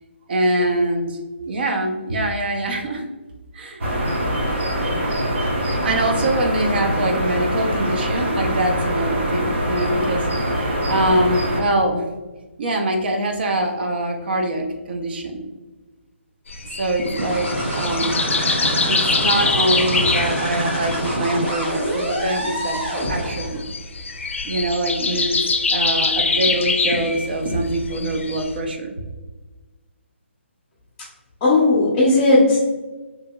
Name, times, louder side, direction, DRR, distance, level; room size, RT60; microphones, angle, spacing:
voice 1, 0.3-1.2 1.5-3.0 3.5-3.8 5.7-10.3 10.6-12.0 12.6-15.4 16.8-18.2 18.9-23.6 24.4-25.4 25.7-28.9, right 1 dB, 50° right, 3 dB, 0.5 m, -23 dB
by the forrest road, 3.8-11.6, right 1 dB, 65° right, 1.0 m, -23 dB
sound 1, 16.5-28.6, left 4 dB, 75° left, 0.4 m, -24 dB
sound 2, 17.0-23.6, equal, 10° right, 0.8 m, -26 dB
voice 2, 31.4-32.6, left 2 dB, 20° left, -6 dB, 0.5 m, -15 dB
2.8 x 2.7 x 2.2 m, 1.2 s
hypercardioid pair, 155°, 7 cm